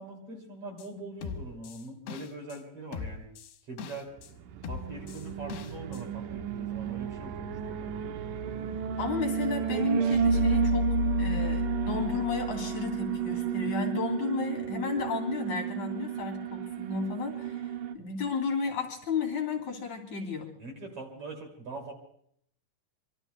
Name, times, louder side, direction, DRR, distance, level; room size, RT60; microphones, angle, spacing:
voice 1, 0.0-3.3 3.7-4.1 4.6-7.9 20.6-21.9, right 2 dB, 40° right, 2 dB, 3.3 m, -42 dB
sound 1, 0.8-0.9 1.2-2.6 2.9-4.3 4.6-6.0 6.3-6.4, left 6 dB, 90° left, 3.1 m, -40 dB
Alarm, 4.5-17.9, right 8 dB, 75° right, 2.2 m, -32 dB
voice 2, 9.0-10.9 11.2-20.5, left 5 dB, 50° left, 0 dB, 4.1 m, -33 dB
sound 2, 10.0-13.2, left 4 dB, 65° left, 3.9 m, -31 dB
26.0 x 24.5 x 2.3 m, 0.66 s
omnidirectional pair, 4.4 m